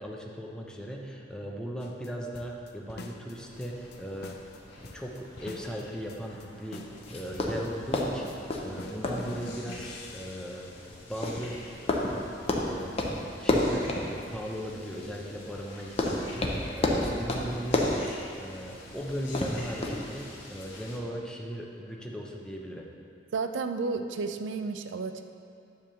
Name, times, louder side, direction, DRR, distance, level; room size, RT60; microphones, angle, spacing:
voice 1, 0.0-4.4 4.8-6.8 7.1-10.7 11.1-11.6 11.8-12.0 12.5-18.0 18.4-22.9, equal, 5° left, -1 dB, 0.8 m, -38 dB
sound 1, 1.8-2.1 2.3-3.3 3.6-4.6 4.8-5.8 6.1-6.5 6.7-10.7, left 2 dB, 60° left, 0.6 m, -45 dB
sound 2, 3.3-21.0, left 1 dB, 85° left, 1.7 m, -48 dB
sound 3, 7.1-20.2, left 1 dB, 35° left, 0.8 m, -32 dB
voice 2, 23.3-25.2, right 4 dB, 85° right, 8 dB, 0.5 m, -32 dB
10.5 x 3.6 x 6.9 m, 2.4 s
head